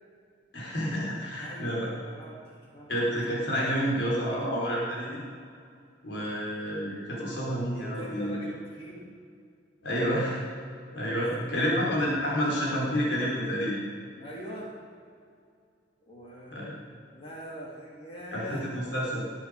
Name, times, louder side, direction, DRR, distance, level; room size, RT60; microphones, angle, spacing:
voice 1, 0.5-1.9 2.9-5.2 6.0-8.4 9.8-10.4 10.9-13.8 16.5-16.7 18.3-19.3, equal, 90° left, -5 dB, 4.4 m, -29 dB
voice 2, 1.4-2.4 2.7-2.9 7.7-9.1 10.9-12.0 14.2-14.7 16.1-18.7, equal, 35° left, -4 dB, 3.1 m, -43 dB
19.0 x 11.0 x 5.1 m, 2.2 s
head